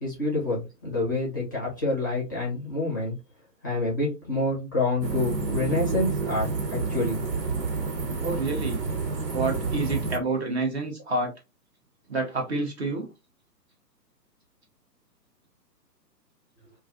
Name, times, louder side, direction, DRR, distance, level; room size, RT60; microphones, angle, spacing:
voice 1, 0.0-3.1 3.6-7.2, left 2 dB, 15° left, -5 dB, 0.4 m, -27 dB
sound 1, 5.0-10.2, right 4 dB, 80° right, 1.0 m, -29 dB
voice 2, 8.2-8.8 9.3-11.3 12.1-13.1, right 3 dB, 45° right, 1 dB, 0.5 m, -28 dB
2.4 x 2.3 x 2.4 m, 0.27 s
figure-of-eight pair, 130°, 49 cm